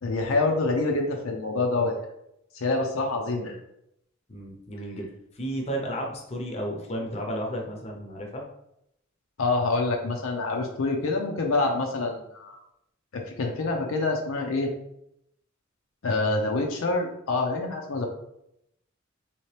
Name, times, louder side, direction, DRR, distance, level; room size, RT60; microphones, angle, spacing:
voice 1, 0.0-1.9 2.5-3.6 9.4-12.6 13.1-14.7 16.0-18.1, left 3 dB, 75° left, 2 dB, 0.6 m, -26 dB
voice 2, 4.3-8.4, equal, 30° left, 0 dB, 0.7 m, -33 dB
3.3 x 2.9 x 3.2 m, 0.79 s
head